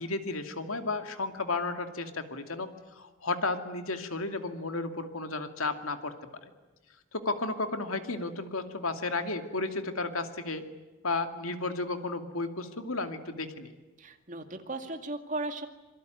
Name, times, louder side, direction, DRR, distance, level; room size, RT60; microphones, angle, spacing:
voice 1, 0.0-2.7 3.0-6.1 6.4-6.5 7.1-10.6 11.0-13.7, left 3 dB, 90° left, 7 dB, 2.5 m, -33 dB
voice 2, 14.0-15.7, right 2 dB, 35° right, 6 dB, 2.4 m, -36 dB
26.5 x 24.0 x 9.4 m, 1.2 s
head